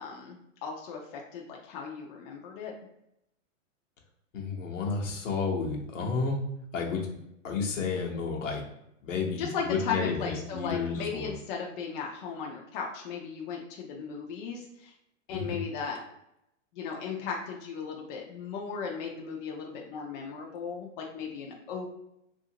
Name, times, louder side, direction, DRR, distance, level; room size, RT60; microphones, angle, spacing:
voice 1, 0.0-2.7 9.4-14.9 15.3-16.0 16.7-21.9, left 5 dB, 45° left, 0 dB, 0.6 m, -36 dB
voice 2, 4.3-6.4 6.7-7.1 7.4-8.6 9.0-11.3 15.3-15.6, left 5 dB, 75° left, -1 dB, 1.0 m, -31 dB
2.7 x 2.5 x 2.8 m, 0.81 s
hypercardioid pair, 120°, 38 cm